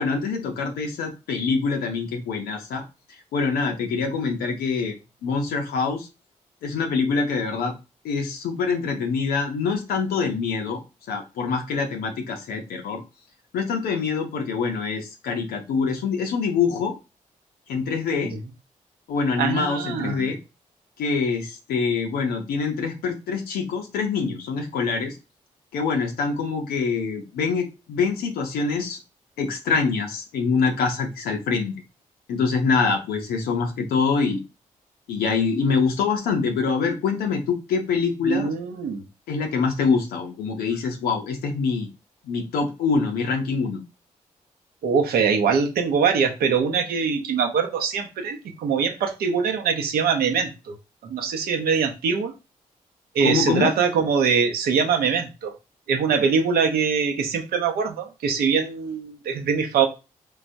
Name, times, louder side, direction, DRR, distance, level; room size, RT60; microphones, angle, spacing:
voice 1, 0.0-2.8 3.3-4.9 5.2-6.1 6.6-7.7 8.0-10.8 11.1-13.0 13.5-16.9 17.7-18.3 19.1-20.4 21.0-25.2 25.7-29.0 29.4-31.7 32.3-34.4 35.1-38.5 39.3-41.9 42.2-43.8 53.2-53.7, left 5 dB, 85° left, 0.5 m, -25 dB
voice 2, 19.4-20.3 38.2-39.0 44.8-50.8 51.0-52.3 53.1-55.5 55.9-59.9, right 6 dB, 80° right, 0.6 m, -23 dB
3.3 x 2.2 x 2.6 m
supercardioid pair, 40°, 15 cm